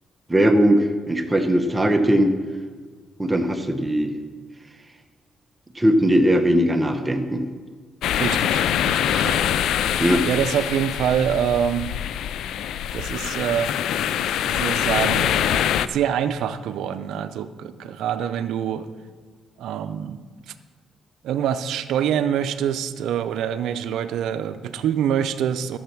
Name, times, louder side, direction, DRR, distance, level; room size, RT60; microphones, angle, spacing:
voice 1, 0.3-2.3 3.2-4.1 5.7-7.4 10.0-10.2, equal, 15° right, 6 dB, 0.9 m, -19 dB
sound 1, 8.0-15.9, left 10 dB, 80° left, 0.4 m, -24 dB
voice 2, 8.2-9.4 10.2-11.9 12.9-13.7 14.1-18.9 19.6-20.2 21.2-25.8, right 9 dB, 80° right, 11 dB, 0.6 m, -25 dB
11.5 x 7.2 x 6.0 m, 1.5 s
cardioid pair, 90°, 0 cm